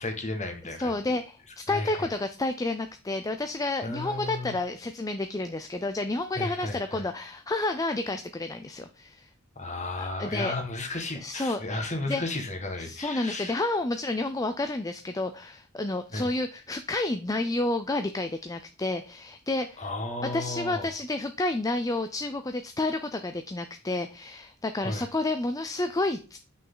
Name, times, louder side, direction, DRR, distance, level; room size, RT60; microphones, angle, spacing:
voice 1, 0.0-0.9 1.7-2.1 3.8-4.5 6.3-7.0 9.5-13.6 16.1-16.3 19.8-20.9 24.8-25.1, left 2 dB, 30° left, 4 dB, 1.7 m, -34 dB
voice 2, 0.8-9.3 10.0-10.5 11.2-12.2 12.8-19.9 20.2-26.4, left 2 dB, 15° left, 8 dB, 0.4 m, -30 dB
8.3 x 6.1 x 3.9 m, 0.34 s
head